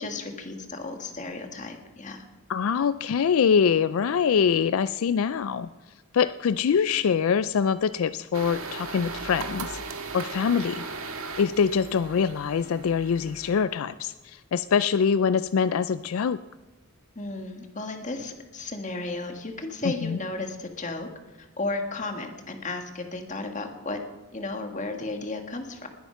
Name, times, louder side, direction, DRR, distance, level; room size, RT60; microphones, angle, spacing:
voice 1, 0.0-2.3 17.2-21.1 21.4-24.0 24.3-25.9, left 2 dB, 35° left, 5 dB, 1.7 m, -34 dB
voice 2, 2.5-5.7 6.1-9.8 10.1-10.8 11.4-16.4 19.8-20.2, left 6 dB, 75° left, 14 dB, 0.4 m, -24 dB
sound 1, 8.3-13.7, right 4 dB, 85° right, 1.7 m, -37 dB
20.0 x 8.5 x 5.8 m, 1.2 s
head